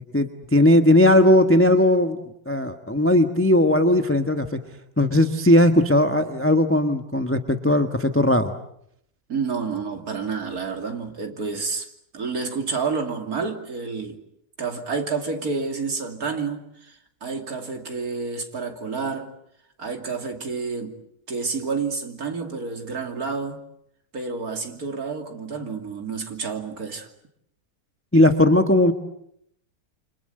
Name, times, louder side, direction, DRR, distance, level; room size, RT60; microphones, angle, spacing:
voice 1, 0.1-2.2 2.5-4.5 5.0-8.5 28.1-28.9, left 1 dB, 10° left, 1.2 m, -18 dB
voice 2, 9.3-11.9 12.1-14.2 14.6-19.3 19.8-21.0 21.3-23.6 24.1-27.1, right 4 dB, 55° right, 3.2 m, -29 dB
29.0 x 26.0 x 8.0 m
omnidirectional pair, 1.9 m